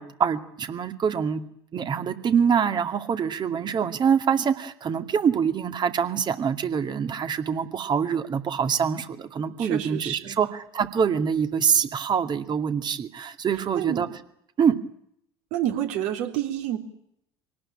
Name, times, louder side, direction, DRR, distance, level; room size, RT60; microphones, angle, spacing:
voice 1, 0.0-1.4 1.7-14.1 14.6-14.8, right 7 dB, 35° right, 8 dB, 2.3 m, -25 dB
voice 2, 9.6-10.4 13.7-14.0 15.5-16.8, right 11 dB, 60° right, 4 dB, 3.5 m, -28 dB
25.0 x 19.0 x 8.9 m, 0.74 s
figure-of-eight pair, 65°, 13 cm